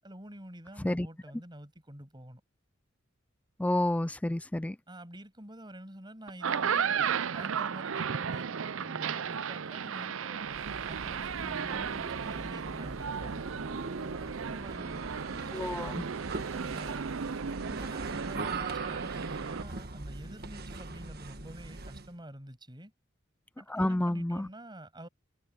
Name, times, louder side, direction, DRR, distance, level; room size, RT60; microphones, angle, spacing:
voice 1, 0.0-2.4 4.9-7.0 7.3-10.5 10.9-13.4 14.1-16.1 16.5-17.2 17.6-22.9 23.6-25.1, right 1 dB, 25° right, 6.9 m, -48 dB
voice 2, 3.6-4.8 15.5-15.9 23.7-24.5, left 1 dB, 5° left, 0.3 m, -29 dB
sound 1, 6.3-19.6, right 7 dB, 85° right, 0.6 m, -34 dB
sound 2, 10.4-22.2, right 3 dB, 55° right, 1.5 m, -41 dB
head